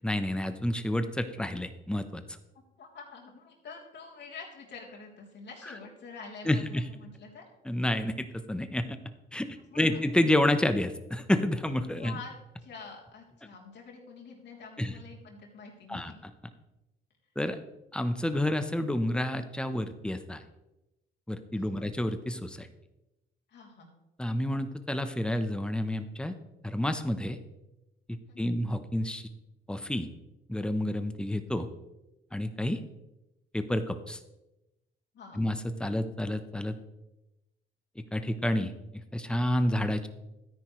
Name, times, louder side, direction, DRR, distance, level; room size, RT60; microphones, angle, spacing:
voice 1, 0.0-2.2 6.5-6.9 7.6-9.0 9.3-9.5 9.7-12.2 14.8-14.9 15.9-16.1 17.4-17.6 17.9-20.4 21.3-22.7 24.2-26.3 26.6-27.4 28.4-29.3 29.7-30.1 30.5-31.7 32.3-32.8 33.5-34.2 35.3-36.8 38.0-38.7 39.1-40.1, left 1 dB, 5° left, 9 dB, 0.9 m, -29 dB
voice 2, 2.8-7.5 9.7-10.0 12.0-12.3 12.6-16.2 21.8-21.9 23.5-23.9 28.3-28.6 35.1-35.4, left 5 dB, 60° left, -2 dB, 3.3 m, -47 dB
13.0 x 9.8 x 3.2 m, 0.95 s
cardioid pair, 90°, 20 cm